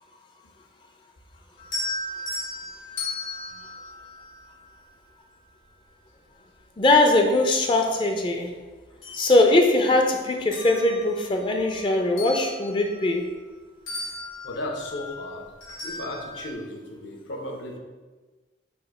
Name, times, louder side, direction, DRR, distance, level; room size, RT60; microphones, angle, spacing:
sound 1, 1.6-4.9 6.6-6.7 7.2-8.4 8.8-10.0 10.4-13.6 13.9-16.5, left 2 dB, 85° left, 1.4 m, -37 dB
voice 1, 6.8-8.5 9.1-13.3, left 2 dB, 25° left, 4 dB, 0.4 m, -21 dB
voice 2, 14.4-15.5 15.8-17.8, left 1 dB, 70° left, 1 dB, 0.8 m, -35 dB
4.3 x 2.6 x 4.7 m, 1.3 s
head